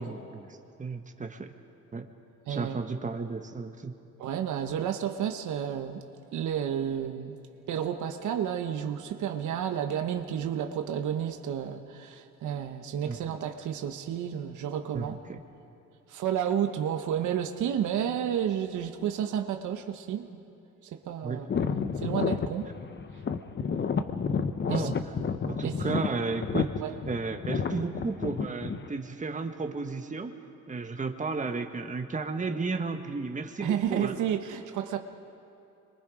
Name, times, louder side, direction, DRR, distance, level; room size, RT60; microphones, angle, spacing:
voice 1, 0.0-1.5 1.9-2.1 2.5-3.9 13.1-13.2 14.9-15.4 21.2-21.4 24.7-25.0 25.5-26.7 27.1-30.3 30.7-34.2, right 4 dB, 25° right, 6 dB, 1.4 m, -33 dB
voice 2, 2.5-2.8 4.2-6.0 6.3-7.4 7.7-15.2 16.1-20.4 20.9-21.5 22.0-22.7 24.7-24.9 25.6-26.0 26.8-26.9 33.6-35.0, right 9 dB, 75° right, 6 dB, 1.1 m, -31 dB
sound 1, 21.5-28.9, left 5 dB, 35° left, 0.8 m, -31 dB
26.0 x 22.5 x 5.0 m, 2.7 s
cardioid pair, 90°, 30 cm